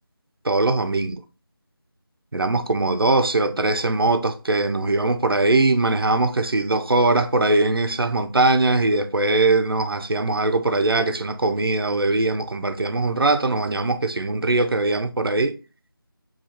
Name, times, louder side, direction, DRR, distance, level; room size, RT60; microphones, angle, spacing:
voice 1, 0.4-1.2 2.3-15.6, right 2 dB, 80° right, 0.5 m, -21 dB
4.1 x 2.9 x 2.7 m
figure-of-eight pair, 170°, 12 cm